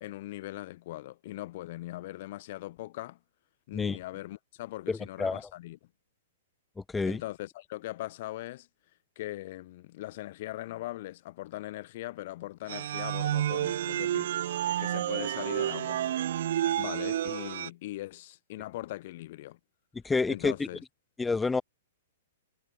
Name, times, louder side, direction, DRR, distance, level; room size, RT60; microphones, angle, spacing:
voice 1, 0.0-3.2 3.7-5.8 7.0-8.7 9.1-16.0 16.8-19.6 20.3-20.8, left 16 dB, 45° left, 1.5 m, -40 dB
voice 2, 4.9-5.4 6.9-7.2 20.0-20.5 21.2-21.6, left 4 dB, 5° left, 0.5 m, -28 dB
sound 1, 12.7-17.7, right 11 dB, 60° right, 1.0 m, -30 dB
hypercardioid pair, 165°, 0 cm